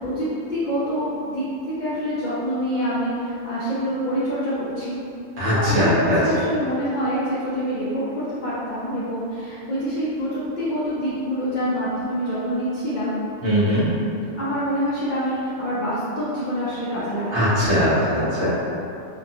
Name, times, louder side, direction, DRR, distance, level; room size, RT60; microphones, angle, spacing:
voice 1, 0.0-1.4 1.8-5.0 5.5-13.2 14.4-18.0, equal, 65° left, -10 dB, 0.4 m, -26 dB
voice 2, 5.4-6.2 13.4-13.9 17.3-18.5, equal, 60° right, -10 dB, 1.1 m, -20 dB
2.8 x 2.3 x 2.7 m, 2.6 s
omnidirectional pair, 1.4 m